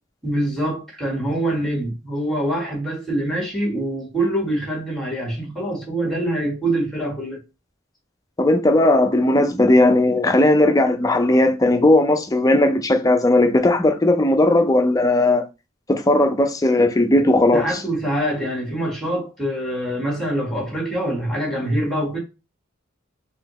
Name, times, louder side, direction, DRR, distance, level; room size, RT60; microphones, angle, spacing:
voice 1, 0.2-7.4 17.5-22.2, right 1 dB, ahead, 1.5 m, -24 dB
voice 2, 8.4-15.5 15.9-17.6, left 1 dB, 15° left, 0.5 m, -17 dB
4.1 x 2.8 x 3.0 m
head